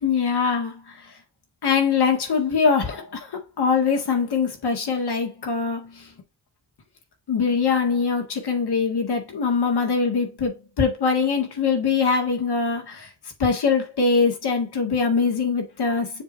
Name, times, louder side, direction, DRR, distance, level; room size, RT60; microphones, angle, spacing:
voice 1, 0.0-0.9 1.6-3.3 3.6-6.1 7.3-13.1 13.4-16.2, left 5 dB, 75° left, 1.9 m, -23 dB
7.2 x 3.0 x 6.0 m
wide cardioid pair, 155°, 39 cm